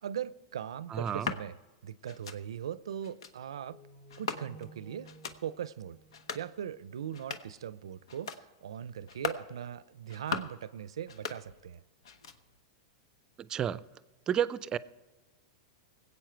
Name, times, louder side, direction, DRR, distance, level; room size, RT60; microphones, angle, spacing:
voice 1, 0.0-1.6 1.8-3.8 4.2-5.1 5.4-6.0 6.3-11.8, right 9 dB, 85° right, 0.5 m, -40 dB
voice 2, 0.9-1.3 13.4-13.8 14.3-14.8, right 9 dB, 25° right, 0.4 m, -31 dB
sound 1, 1.0-1.4 2.1-2.4 3.0-3.3 4.1-4.7 5.0-5.4 6.0-6.5 7.0-7.6 8.1-8.4 9.0-9.5 10.0-10.6 11.0-11.8 12.0-12.6, left 6 dB, 80° left, 0.9 m, -40 dB
sound 2, 3.6-7.1, right 2 dB, 50° left, 4.0 m, -54 dB
20.0 x 8.4 x 4.5 m
hypercardioid pair, 115°, 3 cm